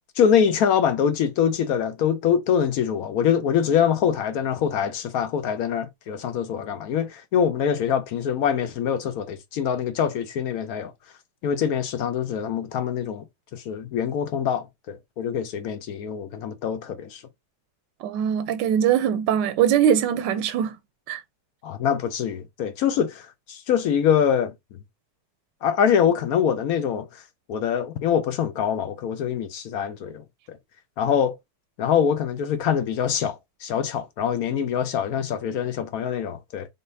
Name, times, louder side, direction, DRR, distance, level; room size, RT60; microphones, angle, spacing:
voice 1, 0.2-10.9 11.4-13.2 13.5-17.2 21.6-24.5 25.6-27.1 27.5-30.2 30.5-30.6 31.0-31.4 31.8-36.7, left 8 dB, 70° left, 1.0 m, -24 dB
voice 2, 18.0-20.8 21.1-21.2, right 9 dB, 85° right, 1.2 m, -22 dB
4.1 x 3.5 x 2.6 m
omnidirectional pair, 1.9 m